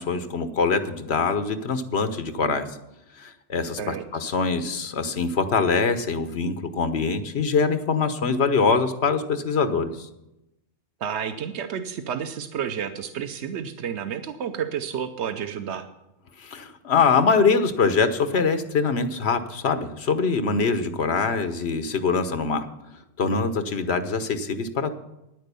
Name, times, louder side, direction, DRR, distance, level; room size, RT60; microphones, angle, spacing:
voice 1, 0.0-2.7 3.2-10.1 16.4-22.7 23.2-24.9, left 5 dB, 70° left, 9 dB, 1.2 m, -23 dB
voice 2, 11.0-15.9, right 8 dB, 90° right, 8 dB, 1.0 m, -30 dB
9.9 x 9.3 x 6.8 m, 0.90 s
omnidirectional pair, 1.1 m